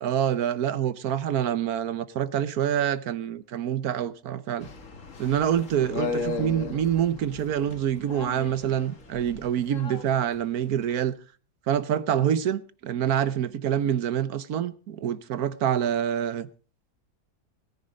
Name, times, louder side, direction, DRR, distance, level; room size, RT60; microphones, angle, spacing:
voice 1, 0.0-4.7 5.2-11.1 11.7-16.5, right 9 dB, 70° right, 1.3 m, -26 dB
sound 1, 4.6-10.0 10.8-10.9, left 4 dB, 55° left, 2.0 m, -36 dB
18.0 x 9.8 x 5.0 m
omnidirectional pair, 1.7 m